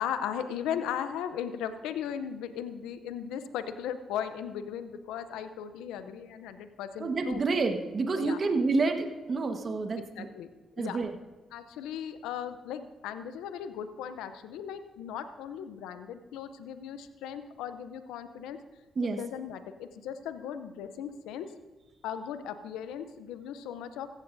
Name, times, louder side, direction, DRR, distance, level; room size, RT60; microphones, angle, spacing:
voice 1, 0.0-7.4 8.2-8.4 10.0-10.5 10.8-11.1 11.5-18.6 19.0-21.5 22.0-24.1, left 9 dB, 85° left, 10 dB, 0.6 m, -37 dB
voice 2, 7.0-10.3 10.8-11.1 19.0-19.2, right 3 dB, 50° right, 5 dB, 1.4 m, -29 dB
15.5 x 14.5 x 2.7 m, 1.2 s
supercardioid pair, 55°, 0 cm